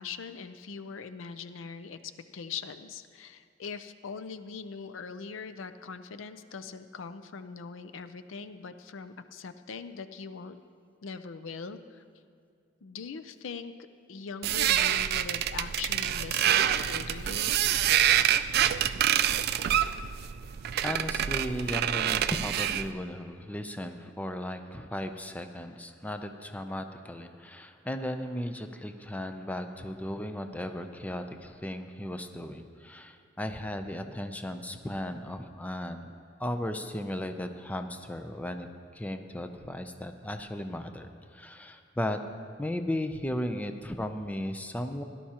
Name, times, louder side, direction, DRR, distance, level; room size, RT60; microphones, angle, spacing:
voice 1, 0.0-10.6 11.0-12.0 12.8-13.7 14.1-17.6, left 5 dB, 80° left, 10 dB, 0.5 m, -41 dB
sound 1, 14.4-22.9, right 10 dB, 55° right, 0.3 m, -26 dB
voice 2, 20.8-36.1 36.4-38.7 38.9-42.2 42.6-45.0, left 1 dB, 10° left, 7 dB, 0.4 m, -36 dB
17.5 x 11.5 x 2.9 m, 2.2 s
head